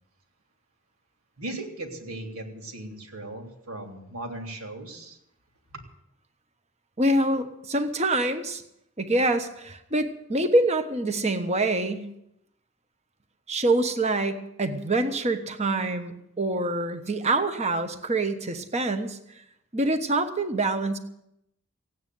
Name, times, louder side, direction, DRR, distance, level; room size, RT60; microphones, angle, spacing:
voice 1, 1.4-5.2 5.7-5.8, right 2 dB, 80° right, 3 dB, 3.2 m, -38 dB
voice 2, 7.0-8.6 9.0-12.1 13.5-19.2 19.7-21.0, right 2 dB, 30° right, 8 dB, 1.2 m, -25 dB
16.0 x 9.4 x 9.3 m, 0.78 s
head